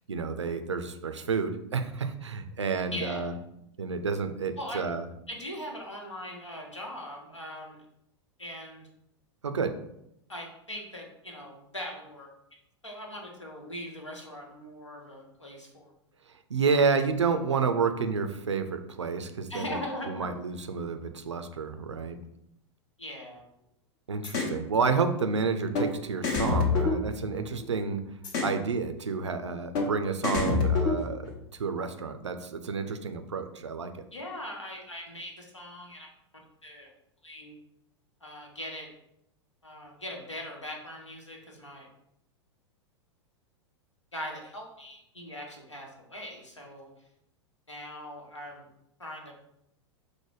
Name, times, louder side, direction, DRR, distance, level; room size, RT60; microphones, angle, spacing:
voice 1, 0.1-3.3 3.8-5.0 9.4-9.8 16.5-19.8 20.1-22.2 24.1-28.0 28.4-31.3 31.6-34.1, right 5 dB, 75° right, 7 dB, 0.5 m, -30 dB
voice 2, 2.9-3.3 4.6-4.8 5.3-7.8 8.4-8.9 10.3-12.3 12.8-15.9 16.7-17.0 19.5-20.3 23.0-23.5 34.1-36.1 36.6-36.9 37.2-37.5 38.2-38.9 39.6-41.9 44.1-46.9 47.7-48.7 49.0-49.3, left 1 dB, 80° left, 0 dB, 1.0 m, -40 dB
sound 1, 24.2-24.6 25.7-25.9 26.2-27.6 28.2-28.6 29.7-29.9 30.2-31.3, left 4 dB, 45° left, 0.9 m, -27 dB
4.7 x 2.1 x 4.7 m, 0.80 s
figure-of-eight pair, 90°, 15 cm